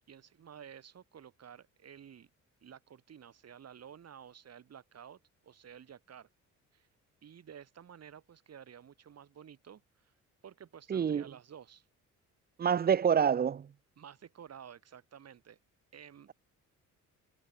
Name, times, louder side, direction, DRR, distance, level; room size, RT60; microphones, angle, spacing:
voice 1, 0.1-2.3 2.6-6.3 6.7-6.9 7.2-10.1 10.4-11.9 14.0-15.6 15.9-16.3, right 8 dB, 55° right, 6.7 m, -52 dB
voice 2, 10.9-11.2 12.6-13.7, right 7 dB, 30° right, 0.6 m, -27 dB
cardioid pair, 90°, 30 cm